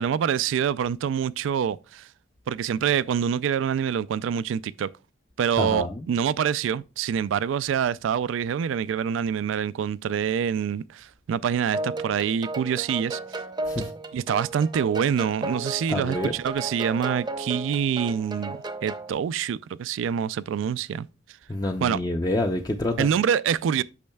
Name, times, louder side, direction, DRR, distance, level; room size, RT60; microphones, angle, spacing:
voice 1, 0.0-2.1 2.5-4.9 5.4-13.2 13.8-21.1 21.8-22.0 23.0-23.8, right 8 dB, 90° right, 0.3 m, -26 dB
voice 2, 5.6-6.0 13.7-13.8 15.9-16.3 21.5-23.1, left 1 dB, 20° left, 0.4 m, -27 dB
sound 1, 11.7-19.1, right 2 dB, 25° right, 0.6 m, -34 dB
8.4 x 6.3 x 2.2 m
head